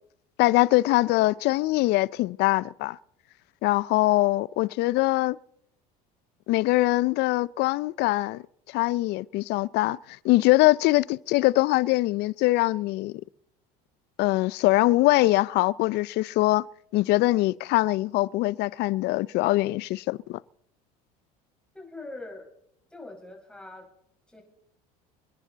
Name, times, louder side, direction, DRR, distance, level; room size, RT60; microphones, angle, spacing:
voice 1, 0.4-3.0 3.6-5.4 6.5-8.4 8.7-10.0 10.2-13.2 14.2-16.6 16.9-20.4, left 19 dB, 60° left, 0.6 m, -23 dB
voice 2, 21.7-22.5 22.9-23.9 24.3-24.4, left 2 dB, 5° left, 5.4 m, -42 dB
27.5 x 10.5 x 4.1 m
supercardioid pair, 90°, 19 cm